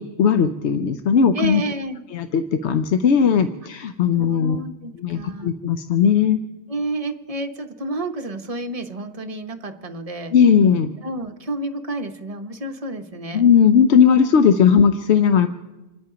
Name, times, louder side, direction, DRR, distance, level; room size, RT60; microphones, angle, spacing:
voice 1, 0.0-1.6 2.1-4.6 5.0-6.4 10.3-10.9 13.3-15.5, left 7 dB, 75° left, 9 dB, 0.9 m, -17 dB
voice 2, 1.3-2.0 3.7-3.9 4.2-5.5 6.7-10.3 11.0-13.4 14.7-14.8, right 1 dB, 35° right, 6 dB, 0.9 m, -30 dB
27.5 x 10.5 x 5.0 m, 1.1 s
omnidirectional pair, 1.2 m